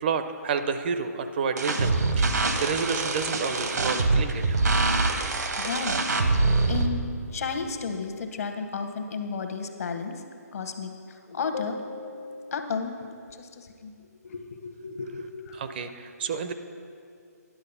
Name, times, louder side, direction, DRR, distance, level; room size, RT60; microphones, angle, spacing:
voice 1, 0.0-4.6 15.5-16.5, right 5 dB, 35° right, 9 dB, 0.4 m, -30 dB
sound 1, 1.6-6.9, right 3 dB, 80° right, 1.0 m, -24 dB
voice 2, 5.6-5.9 6.7-10.2 10.5-12.9 13.4-13.9 14.2-15.6, left 5 dB, 60° left, 6 dB, 1.0 m, -33 dB
10.5 x 6.5 x 5.5 m, 2.3 s
hypercardioid pair, 150°, 9 cm